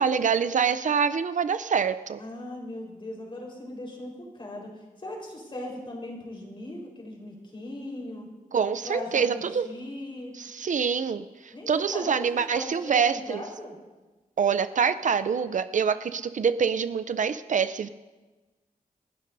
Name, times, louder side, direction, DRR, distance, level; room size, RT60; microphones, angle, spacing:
voice 1, 0.0-2.2 8.5-9.6 10.4-13.4 14.4-17.9, right 6 dB, 60° right, 12 dB, 0.5 m, -25 dB
voice 2, 2.2-8.3 8.8-10.3 11.5-13.8, left 1 dB, 35° left, -1 dB, 4.2 m, -39 dB
29.0 x 12.0 x 2.7 m, 1.2 s
wide cardioid pair, 135°, 15 cm